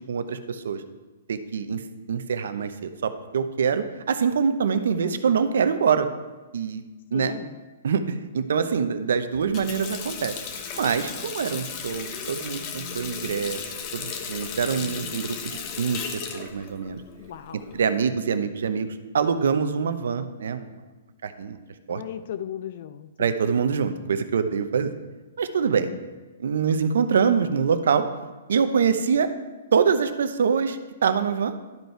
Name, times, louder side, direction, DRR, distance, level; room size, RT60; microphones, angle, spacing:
voice 1, 0.1-0.8 1.3-1.8 2.1-6.1 6.5-6.8 7.1-7.3 7.8-10.4 10.7-13.6 13.9-17.0 17.7-18.9 19.1-20.7 21.2-21.6 21.9-22.0 23.2-24.9 25.4-25.9 26.4-28.1 28.5-29.3 29.7-31.5, right 6 dB, 75° right, 10 dB, 0.8 m, -24 dB
voice 2, 7.1-7.6 17.2-17.8 21.9-23.3, left 10 dB, 55° left, 11 dB, 0.4 m, -37 dB
Water tap faucet, 9.3-17.8, left 6 dB, 35° left, 1.1 m, -35 dB
12.0 x 5.5 x 4.5 m, 1.2 s
hypercardioid pair, 145°, 0 cm